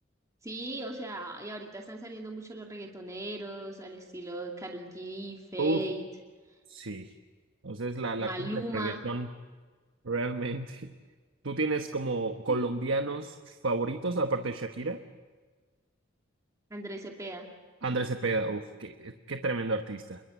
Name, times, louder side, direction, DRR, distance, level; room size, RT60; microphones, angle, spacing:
voice 1, 0.4-6.1 8.2-9.0 12.5-12.6 16.7-17.5, right 1 dB, 15° right, 0 dB, 2.4 m, -38 dB
voice 2, 6.7-7.1 7.6-9.3 10.0-10.9 11.4-15.0 17.8-20.2, right 3 dB, 75° right, 6 dB, 1.2 m, -31 dB
27.5 x 23.0 x 8.3 m, 1.4 s
head